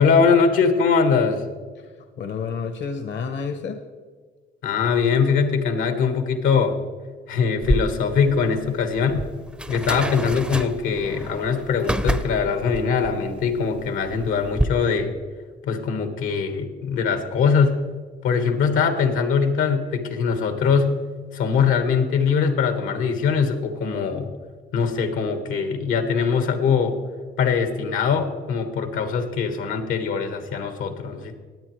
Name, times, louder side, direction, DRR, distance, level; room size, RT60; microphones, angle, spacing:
voice 1, 0.0-1.4 4.6-6.7 7.3-9.2 9.7-15.1 15.6-17.8 18.2-20.9 21.3-24.3 24.7-27.0 27.4-31.3, left 5 dB, 90° left, 7 dB, 1.4 m, -22 dB
voice 2, 1.8-3.8, left 5 dB, 65° left, 6 dB, 0.9 m, -30 dB
sound 1, 7.6-14.6, right 1 dB, 5° right, 0.5 m, -29 dB
20.0 x 8.2 x 3.1 m, 1.5 s
cardioid pair, 90°, 20 cm